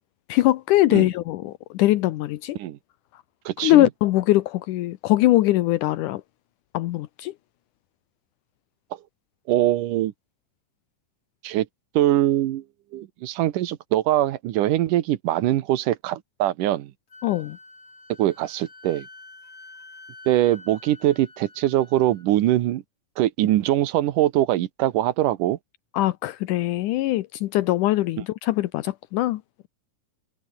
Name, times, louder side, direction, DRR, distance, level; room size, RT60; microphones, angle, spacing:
voice 1, 0.3-2.6 3.1-3.2 3.6-6.2 6.7-7.3 17.2-17.6 25.9-29.7, left 16 dB, 80° left, 2.3 m, -22 dB
voice 2, 3.5-3.9 9.5-10.1 11.4-11.7 11.9-12.6 12.9-16.9 18.2-19.1 20.3-22.8 23.2-25.6, right 14 dB, 75° right, 2.6 m, -22 dB
Wind instrument woodwind instrument, 17.1-22.3, left 3 dB, 40° left, 8.3 m, -47 dB
omnidirectional pair, 3.8 m